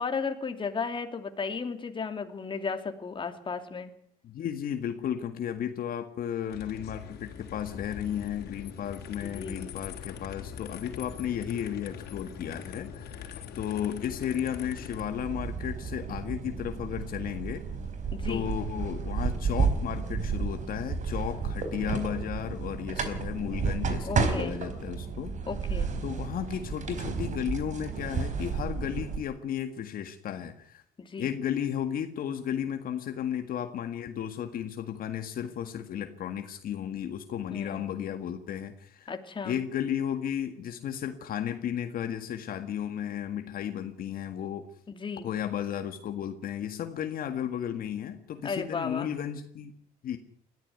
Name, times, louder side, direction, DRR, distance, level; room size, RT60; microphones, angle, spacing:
voice 1, 0.0-3.9 9.2-9.6 18.1-18.5 24.0-24.6 25.5-25.9 31.0-31.3 37.5-37.9 39.1-39.6 44.9-45.3 48.4-49.1, left 5 dB, 30° left, 6 dB, 2.8 m, -34 dB
voice 2, 4.2-17.7 18.3-25.3 25.7-30.8 31.2-39.1 39.4-44.7 45.2-49.7 50.0-50.2, left 9 dB, 60° left, 7 dB, 1.9 m, -34 dB
sound 1, 6.5-15.1, left 7 dB, 75° left, 3.8 m, -42 dB
sound 2, 14.7-29.2, right 5 dB, 45° right, 4.4 m, -32 dB
21.0 x 14.5 x 9.4 m, 0.65 s
cardioid pair, 110°, 17 cm